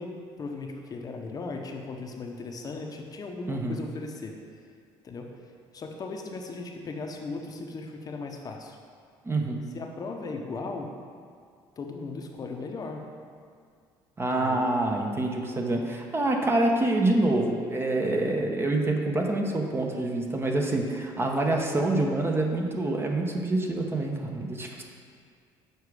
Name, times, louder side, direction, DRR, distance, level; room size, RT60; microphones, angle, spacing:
voice 1, 0.0-4.3 5.0-5.3 5.7-8.8 9.7-10.9 11.8-13.0 14.3-14.6, left 3 dB, 40° left, 2 dB, 0.7 m, -37 dB
voice 2, 3.5-3.8 9.2-9.6 14.2-24.8, right 2 dB, 25° right, 2 dB, 0.8 m, -26 dB
6.7 x 4.7 x 4.8 m, 2.1 s
cardioid pair, 100°, 10 cm